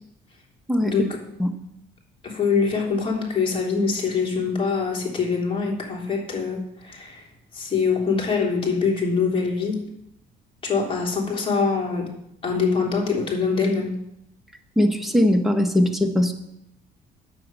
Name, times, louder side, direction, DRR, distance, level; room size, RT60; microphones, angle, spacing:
voice 1, 0.8-1.2 2.2-7.3 7.5-9.8 10.6-12.1 12.4-14.0, left 5 dB, 30° left, -1 dB, 3.3 m, -24 dB
voice 2, 14.8-16.3, left 1 dB, ahead, 4 dB, 1.3 m, -20 dB
9.4 x 7.9 x 6.2 m, 0.80 s
cardioid pair, 110°, 17 cm